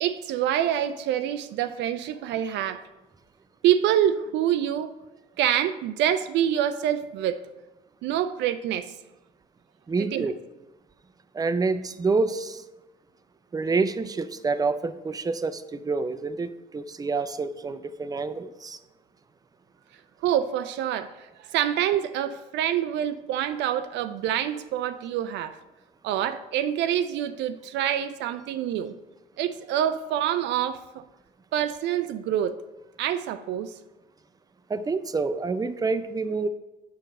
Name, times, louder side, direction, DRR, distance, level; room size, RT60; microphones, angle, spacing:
voice 1, 0.0-2.8 3.6-4.9 5.4-7.4 8.0-8.9 10.0-10.3 20.2-25.6 26.0-28.9 29.4-31.0 31.5-32.5 33.0-33.7, right 10 dB, 70° right, 11 dB, 0.4 m, -26 dB
voice 2, 9.9-10.4 11.3-12.6 13.5-18.8 34.7-36.5, right 4 dB, 20° right, 11 dB, 0.5 m, -27 dB
5.9 x 4.7 x 6.4 m, 1.0 s
supercardioid pair, 60°, 19 cm